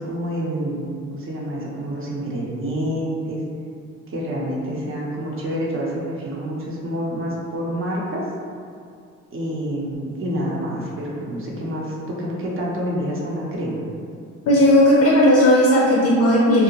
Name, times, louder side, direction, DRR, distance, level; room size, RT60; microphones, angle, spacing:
voice 1, 0.0-3.4 4.1-8.2 9.3-13.8, equal, 45° right, -4 dB, 0.6 m, -27 dB
voice 2, 14.5-16.6, left 1 dB, 55° left, -4 dB, 0.5 m, -15 dB
2.5 x 2.0 x 2.8 m, 2.3 s
cardioid pair, 90°, 30 cm